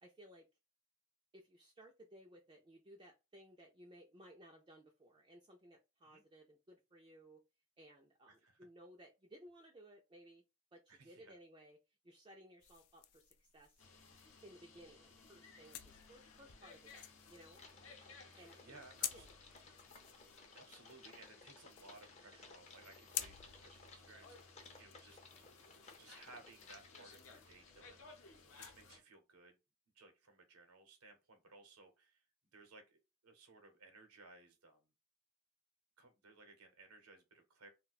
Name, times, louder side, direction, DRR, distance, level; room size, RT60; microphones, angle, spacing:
voice 1, 0.0-0.5 1.3-7.4 7.8-10.4 10.7-11.8 12.0-13.8 14.4-15.8 16.1-17.0 17.3-17.6 18.4-18.8 19.1-19.4, right 1 dB, 20° right, 0.3 m, -60 dB
voice 2, 8.3-8.7 10.9-11.3 18.3-19.3 20.5-25.2 26.0-29.6 29.9-32.2 32.5-34.9 36.0-37.7, right 3 dB, 85° right, 0.8 m, -60 dB
sound 1, 12.6-28.9, left 11 dB, 85° left, 0.4 m, -52 dB
sound 2, 13.8-29.0, left 4 dB, 60° left, 0.7 m, -61 dB
Typing, 17.5-28.0, left 3 dB, 30° left, 0.5 m, -60 dB
2.4 x 2.2 x 3.9 m
head